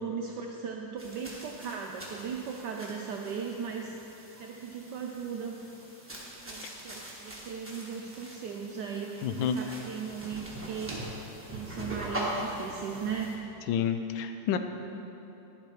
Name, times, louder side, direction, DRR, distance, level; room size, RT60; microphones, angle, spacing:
voice 1, 0.0-3.9 4.4-5.6 6.5-11.1 11.5-13.4, right 6 dB, 75° right, 1 dB, 1.0 m, -37 dB
sound 1, 1.0-13.3, right 1 dB, 10° right, 1.0 m, -42 dB
voice 2, 9.2-9.6 13.7-14.6, left 8 dB, 75° left, 8 dB, 1.3 m, -29 dB
11.0 x 7.3 x 4.9 m, 3.0 s
omnidirectional pair, 2.3 m